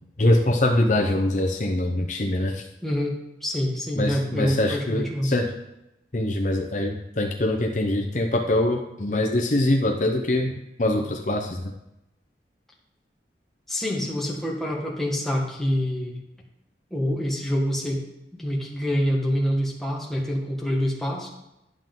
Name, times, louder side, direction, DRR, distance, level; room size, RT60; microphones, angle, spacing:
voice 1, 0.2-2.7 4.0-5.5 6.1-11.7, left 1 dB, 45° left, 2 dB, 0.8 m, -23 dB
voice 2, 2.8-5.3 13.7-16.2 16.9-18.0 18.3-21.3, equal, ahead, -2 dB, 1.5 m, -26 dB
11.0 x 7.5 x 3.8 m, 0.89 s
head